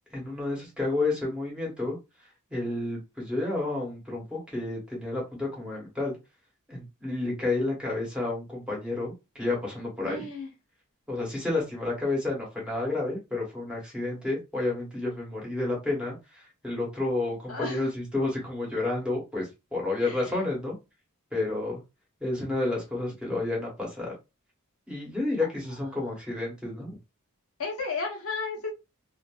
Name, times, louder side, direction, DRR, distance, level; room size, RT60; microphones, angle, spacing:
voice 1, 0.1-2.0 2.5-6.2 6.7-9.1 9.4-10.3 11.1-20.7 21.3-21.8 22.2-24.1 24.9-26.9, left 2 dB, 5° right, -3 dB, 1.1 m, -30 dB
voice 2, 10.0-10.5 17.5-17.9 20.0-20.4 27.6-28.7, left 4 dB, 75° left, -1 dB, 0.9 m, -33 dB
2.5 x 2.5 x 2.4 m, 0.25 s
head